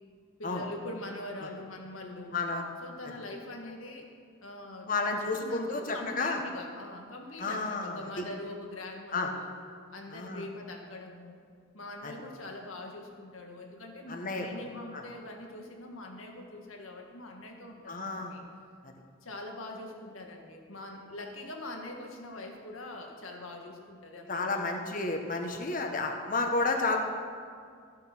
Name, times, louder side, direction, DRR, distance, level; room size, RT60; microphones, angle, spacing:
voice 1, 0.4-2.3 2.8-4.1 4.4-9.5 9.9-11.4 11.7-18.4 19.2-25.0, left 2 dB, 90° left, 2 dB, 1.8 m, -43 dB
voice 2, 2.3-2.6 4.8-6.4 7.4-8.2 9.1-9.3 10.1-10.4 12.0-12.1 14.1-14.5 14.9-15.0 17.9-18.4 24.3-27.0, left 3 dB, 40° left, 3 dB, 1.3 m, -31 dB
14.5 x 7.8 x 6.1 m, 2.2 s
head